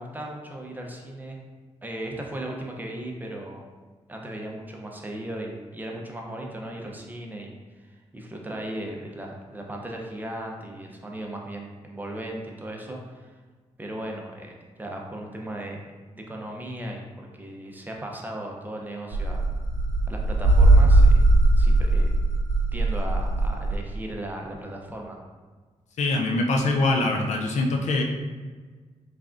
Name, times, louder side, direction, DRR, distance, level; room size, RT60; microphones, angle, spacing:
voice 1, 0.0-1.4 1.8-3.6 4.1-7.5 7.8-13.4 13.8-14.5 14.8-15.8 16.1-19.4 20.1-21.1 21.6-22.1 22.7-25.2, right 1 dB, 15° right, 0 dB, 0.6 m, -36 dB
sound 1, 19.1-23.8, right 2 dB, 75° right, 0.8 m, -19 dB
voice 2, 26.0-28.0, left 2 dB, 70° left, 2 dB, 0.4 m, -23 dB
3.6 x 3.3 x 2.5 m, 1.4 s
cardioid pair, 90°, 12 cm